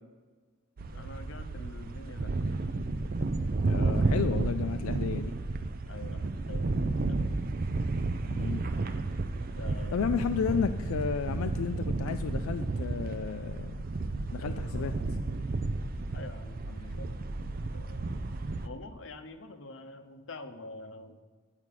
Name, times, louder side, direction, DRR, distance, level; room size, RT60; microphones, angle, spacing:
sound 1, 0.8-18.7, right 3 dB, 45° right, 0.5 m, -32 dB
voice 1, 0.9-2.7 5.9-7.2 9.4-10.1 10.5-10.6 14.4-14.9 16.1-18.1 18.6-21.2, left 3 dB, 60° left, 7 dB, 0.7 m, -47 dB
voice 2, 3.7-5.3 8.3-8.7 9.9-13.8 14.3-15.0, left 6 dB, 90° left, 8 dB, 0.4 m, -32 dB
8.3 x 4.8 x 7.4 m, 1.4 s
head